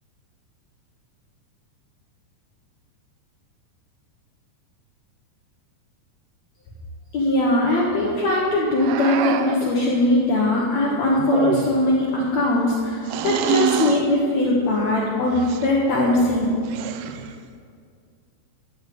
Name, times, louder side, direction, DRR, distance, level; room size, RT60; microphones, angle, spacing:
voice 1, 7.1-16.4, left 1 dB, 90° left, -4 dB, 1.5 m, -20 dB
sound 1, 8.8-9.7 11.2-11.9 13.1-14.1 15.3-15.7 16.6-17.4, right 10 dB, 80° right, 2.4 m, -26 dB
13.0 x 6.3 x 7.8 m, 2.2 s
omnidirectional pair, 5.1 m